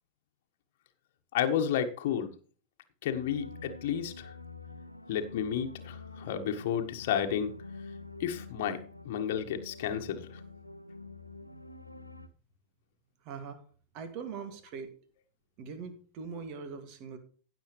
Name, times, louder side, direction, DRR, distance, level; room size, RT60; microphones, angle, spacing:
voice 1, 1.3-2.3 3.0-4.3 5.1-7.5 8.2-8.8 9.0-10.4, left 9 dB, 55° left, 5 dB, 1.4 m, -31 dB
sound 1, 3.1-12.3, left 3 dB, 90° left, 0.9 m, -47 dB
voice 2, 13.2-13.6 13.9-14.9 15.6-17.2, right 5 dB, 40° right, 9 dB, 2.2 m, -41 dB
16.0 x 7.0 x 3.2 m, 0.41 s
figure-of-eight pair, 90°, 0 cm